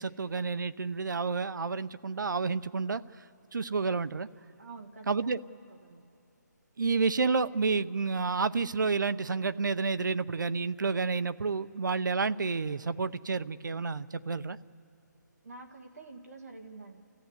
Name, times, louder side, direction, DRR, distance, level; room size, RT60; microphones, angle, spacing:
voice 1, 0.0-3.0 3.5-4.3 5.1-5.4 6.8-14.6, right 4 dB, 80° right, 14 dB, 0.7 m, -30 dB
voice 2, 4.6-6.0 15.4-17.0, right 3 dB, 50° right, 3 dB, 1.8 m, -48 dB
30.0 x 14.5 x 8.0 m, 2.6 s
hypercardioid pair, 175°, 10 cm